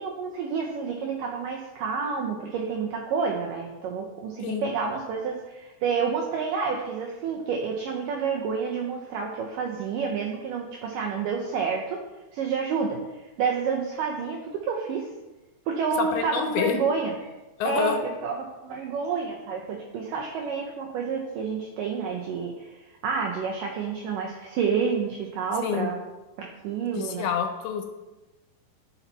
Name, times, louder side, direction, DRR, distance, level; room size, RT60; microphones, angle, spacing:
voice 1, 0.0-12.0 12.3-15.1 15.7-17.3 17.6-18.0 18.2-26.0 26.4-27.3, right 5 dB, 85° right, 1 dB, 1.9 m, -29 dB
voice 2, 16.0-16.8 17.6-18.0 25.6-25.9 26.9-27.9, left 7 dB, 80° left, 5 dB, 2.5 m, -27 dB
10.0 x 5.7 x 4.1 m, 1.1 s
omnidirectional pair, 4.7 m